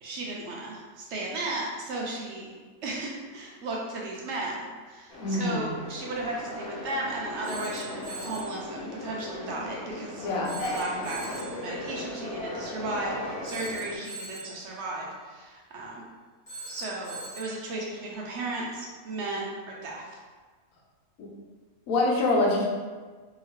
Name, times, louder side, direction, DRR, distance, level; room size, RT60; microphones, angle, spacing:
voice 1, 0.0-2.5 2.8-10.3 10.6-16.0 16.7-20.2, right 2 dB, 65° right, -3 dB, 0.8 m, -35 dB
sound 1, 5.1-14.0, left 1 dB, 55° left, 0.9 m, -37 dB
voice 2, 5.2-5.7 10.2-10.6 21.2-21.3 21.9-22.7, left 2 dB, 80° left, -2 dB, 1.1 m, -25 dB
Telephone, 7.4-8.6 10.4-11.6 13.4-14.6 16.5-17.6, right 3 dB, 30° left, 1.0 m, -41 dB
2.8 x 2.8 x 2.8 m, 1.4 s
omnidirectional pair, 1.4 m